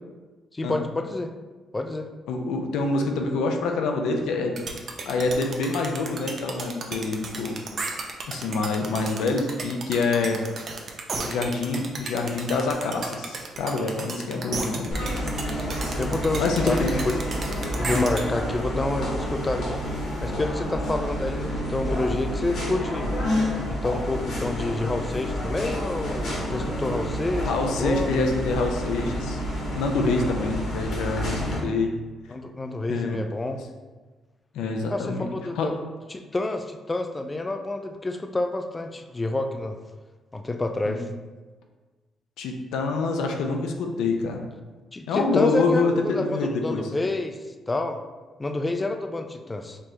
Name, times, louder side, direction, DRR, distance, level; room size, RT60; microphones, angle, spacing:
voice 1, 0.5-1.3 1.7-2.1 14.3-14.7 16.0-23.1 23.7-27.5 27.8-28.1 32.3-33.6 34.9-35.7 36.1-39.8 40.3-41.1 44.9-47.4 47.7-48.0 48.4-49.8, left 2 dB, 20° left, 5 dB, 0.3 m, -28 dB
voice 2, 2.3-4.7 5.1-7.6 8.3-10.4 11.2-15.1 15.6-16.1 16.4-16.9 27.4-29.4 29.7-31.9 32.9-33.2 34.5-35.3 35.6-35.7 40.9-41.0 42.4-44.5 45.1-46.8, left 3 dB, 85° left, 3 dB, 0.5 m, -26 dB
sound 1, 4.6-18.2, right 4 dB, 55° right, 0.6 m, -33 dB
sound 2, 14.9-31.6, equal, 70° left, 1.4 m, -29 dB
4.3 x 3.1 x 2.8 m, 1.3 s
cardioid pair, 90°, 0 cm